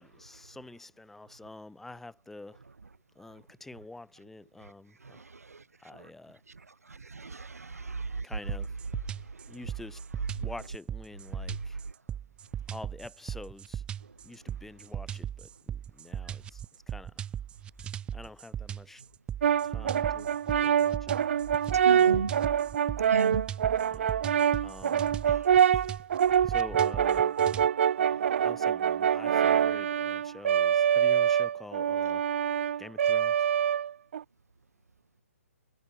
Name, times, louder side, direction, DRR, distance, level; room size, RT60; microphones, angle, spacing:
voice 1, 0.0-2.6 3.1-5.2 5.8-6.4 8.2-8.8 9.5-10.0 10.4-11.8 12.7-13.8 14.2-17.3 18.1-19.0 19.6-20.3 20.6-21.2 21.8-22.3 23.9-24.2 24.6-25.2 26.4-27.4 28.4-32.2 32.8-33.5, left 2 dB, 5° left, 6.4 m, -47 dB
voice 2, 7.1-8.2 21.8-22.3 23.1-23.4 25.3-25.4, right 4 dB, 85° right, 1.3 m, -34 dB
sound 1, 8.5-27.7, right 9 dB, 10° right, 0.7 m, -38 dB
Brass instrument, 19.4-34.2, right 9 dB, 55° right, 0.8 m, -25 dB
hypercardioid pair, 140°, 8 cm